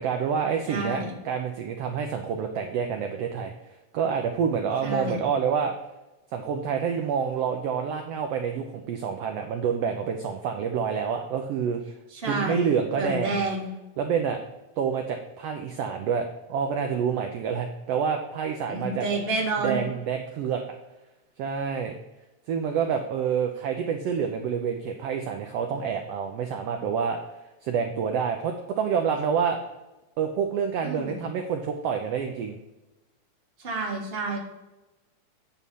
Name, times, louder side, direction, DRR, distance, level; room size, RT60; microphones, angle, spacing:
voice 1, 0.0-3.5 3.9-5.7 6.3-11.8 12.3-13.4 14.0-14.4 14.8-19.1 19.6-20.6 21.4-22.0 22.5-27.2 27.6-29.6 30.2-32.6, right 7 dB, 75° right, 4 dB, 1.5 m, -27 dB
voice 2, 0.7-1.1 4.8-5.2 12.1-12.7 12.9-13.7 18.7-19.8 30.8-31.2 33.6-34.4, right 2 dB, 25° right, -2 dB, 1.5 m, -29 dB
9.4 x 4.2 x 5.4 m, 1.0 s
omnidirectional pair, 3.4 m